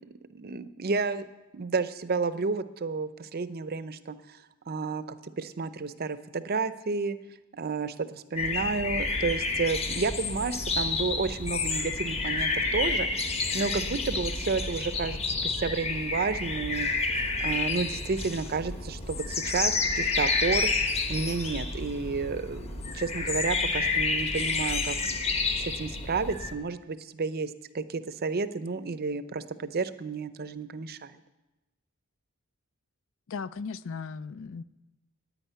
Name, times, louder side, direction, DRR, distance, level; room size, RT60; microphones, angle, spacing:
voice 1, 0.3-1.3 1.5-4.2 4.7-7.2 7.5-16.9 17.4-25.0 25.6-31.2, right 4 dB, 45° right, 13 dB, 0.6 m, -31 dB
sound 1, 8.4-26.5, left 3 dB, 30° left, 1.1 m, -29 dB
voice 2, 33.3-34.6, left 5 dB, 60° left, 16 dB, 0.4 m, -37 dB
10.0 x 9.4 x 9.2 m, 1.0 s
head